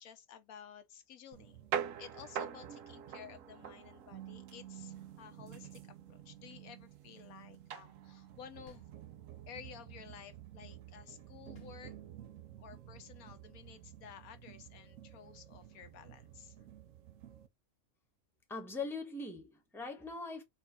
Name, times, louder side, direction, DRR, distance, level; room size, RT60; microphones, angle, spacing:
voice 1, 0.0-8.8 9.5-12.0 12.6-16.6, left 8 dB, 80° left, 1.2 m, -54 dB
sound 1, 1.3-17.5, right 9 dB, 70° right, 1.0 m, -47 dB
sound 2, 8.7-9.6 11.5-12.5, left 5 dB, 50° left, 1.1 m, -62 dB
voice 2, 18.5-20.4, left 3 dB, ahead, 0.9 m, -41 dB
4.4 x 2.5 x 4.0 m
omnidirectional pair, 1.5 m